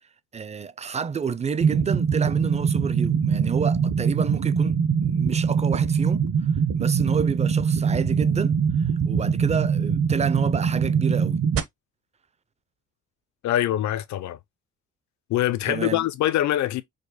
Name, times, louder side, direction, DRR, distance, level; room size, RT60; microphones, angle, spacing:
voice 1, 0.3-6.2 6.8-11.4 15.7-16.0, right 6 dB, 20° right, 0.5 m, -30 dB
sound 1, 1.6-11.6, right 6 dB, 50° right, 0.9 m, -23 dB
voice 2, 13.4-14.4 15.3-16.8, left 13 dB, 70° left, 0.6 m, -24 dB
5.1 x 2.1 x 4.0 m
cardioid pair, 90°, 30 cm